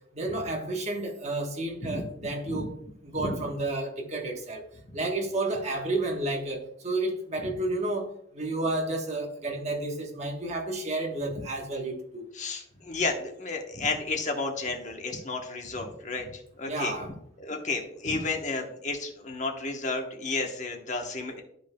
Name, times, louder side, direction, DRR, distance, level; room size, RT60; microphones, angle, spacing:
voice 1, 0.1-2.8 3.0-4.6 4.9-12.3 16.7-17.2, right 2 dB, 35° right, 1.1 m, -31 dB
voice 2, 12.3-16.9 17.4-21.4, left 3 dB, 40° left, 1.0 m, -32 dB
12.0 x 5.3 x 2.2 m
head